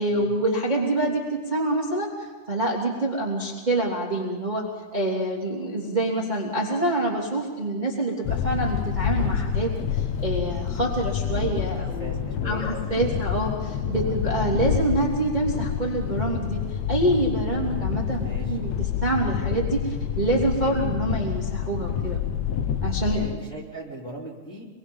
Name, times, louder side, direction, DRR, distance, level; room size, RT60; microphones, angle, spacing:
voice 1, 0.0-4.6 4.9-12.1 12.4-22.2 22.8-23.3, right 2 dB, 10° right, -3 dB, 2.6 m, -26 dB
sound 1, 8.2-23.3, left 9 dB, 80° left, 1.6 m, -28 dB
voice 2, 12.0-13.2 14.0-14.2 17.5-17.8 18.2-18.6 20.6-20.9 23.1-24.7, right 1 dB, 20° left, -5 dB, 3.3 m, -39 dB
26.5 x 23.0 x 5.5 m, 1.4 s
omnidirectional pair, 4.7 m